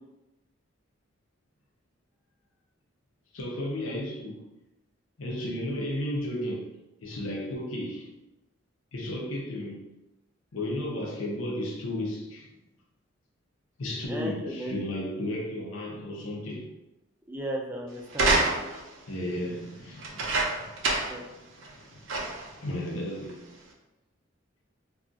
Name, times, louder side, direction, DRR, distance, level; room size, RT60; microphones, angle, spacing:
voice 1, 3.3-4.4 5.2-6.7 7.0-8.1 8.9-9.8 10.5-12.5 13.8-16.7 19.1-21.4 21.8-23.4, left 1 dB, 85° left, -1 dB, 0.7 m, -34 dB
voice 2, 14.1-14.8 17.3-18.3 21.1-21.2, right 1 dB, 10° right, -1 dB, 0.3 m, -35 dB
sound 1, 18.1-18.9 20.0-21.2 21.6-21.7 22.1-22.5 23.3-23.4, right 2 dB, 75° right, 0.6 m, -27 dB
2.4 x 2.4 x 3.8 m, 0.97 s
head